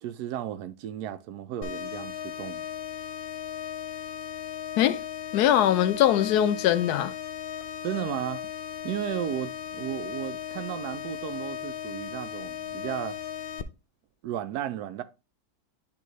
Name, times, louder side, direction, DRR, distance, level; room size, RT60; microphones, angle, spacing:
voice 1, 0.0-2.6 7.8-8.5 8.8-13.2 14.2-15.0, right 11 dB, 85° right, 1.1 m, -34 dB
sound 1, 1.6-13.6, left 9 dB, 70° left, 0.5 m, -37 dB
voice 2, 5.3-7.1, left 11 dB, 90° left, 1.2 m, -22 dB
10.5 x 3.6 x 3.0 m
omnidirectional pair, 1.6 m